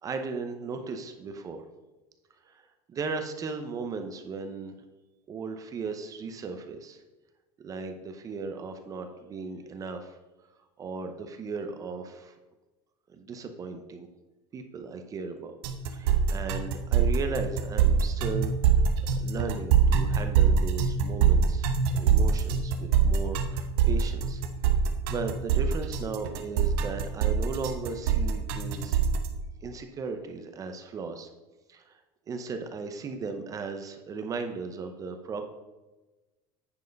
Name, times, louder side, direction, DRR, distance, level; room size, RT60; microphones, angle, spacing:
voice 1, 0.0-1.7 2.4-4.7 5.3-7.0 7.6-10.2 10.8-12.3 13.1-14.1 14.5-15.6 15.9-18.8 19.2-21.7 21.9-24.4 25.1-29.0 29.6-31.3 31.7-32.0 32.3-35.4, right 4 dB, 30° right, 6 dB, 0.7 m, -36 dB
sound 1, 15.6-29.3, right 6 dB, 80° right, 1.0 m, -24 dB
9.6 x 4.7 x 5.2 m, 1.2 s
cardioid pair, 145°, 12 cm